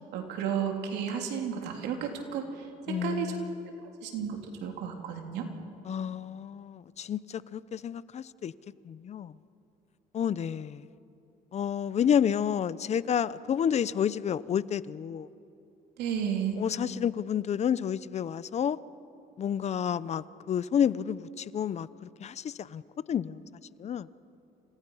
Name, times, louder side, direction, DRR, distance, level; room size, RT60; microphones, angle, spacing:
voice 1, 0.1-3.4 4.0-5.5 16.0-16.6, right 8 dB, 85° right, 3.3 m, -33 dB
voice 2, 2.9-4.0 5.8-8.5 8.8-9.4 10.1-10.9 11.5-15.3 16.6-18.8 19.4-22.8 23.1-23.5 23.8-24.1, left 8 dB, 40° left, 0.6 m, -30 dB
29.5 x 26.5 x 5.6 m
cardioid pair, 110°, 17 cm